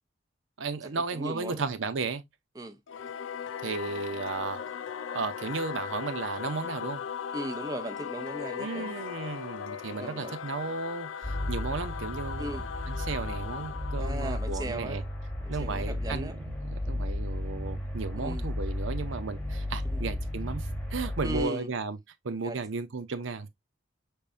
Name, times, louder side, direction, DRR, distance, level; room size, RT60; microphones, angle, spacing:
voice 1, 0.6-2.2 3.6-4.6 5.1-7.0 8.6-15.0 15.5-22.0 22.2-23.5, right 4 dB, 90° right, 0.6 m, -34 dB
voice 2, 1.1-1.7 2.6-2.8 7.3-8.9 9.9-10.4 12.4-12.7 14.0-15.1 15.4-16.4 18.2-18.5 19.8-20.0 21.2-21.7 22.4-22.6, right 1 dB, 20° right, 0.6 m, -37 dB
Singing / Musical instrument, 2.9-15.8, left 8 dB, 85° left, 0.4 m, -38 dB
sound 1, 11.2-21.4, left 1 dB, 5° left, 1.1 m, -34 dB
5.4 x 3.5 x 2.5 m
head